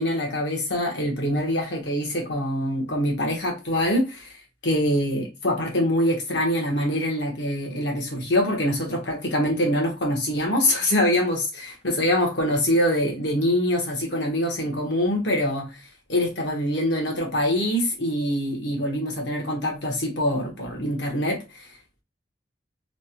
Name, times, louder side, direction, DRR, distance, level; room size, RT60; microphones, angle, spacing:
voice 1, 0.0-15.8 16.1-21.7, left 1 dB, 85° left, 1.1 m, -24 dB
3.3 x 2.1 x 2.8 m
head